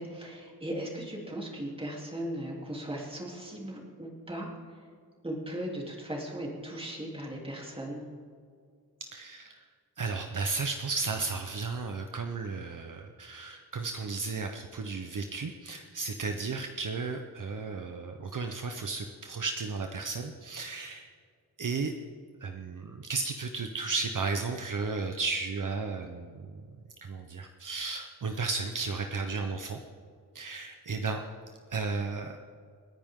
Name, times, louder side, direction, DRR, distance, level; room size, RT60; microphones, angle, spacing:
voice 1, 0.0-4.8 5.2-8.1, right 1 dB, 15° right, -2 dB, 3.3 m, -38 dB
voice 2, 9.1-9.6 10.0-21.1 21.6-21.9 22.4-26.6 27.0-29.8 30.3-31.2 31.7-32.4, right 4 dB, 55° right, 5 dB, 1.0 m, -34 dB
29.0 x 10.5 x 3.8 m, 2.2 s
wide cardioid pair, 160°, 38 cm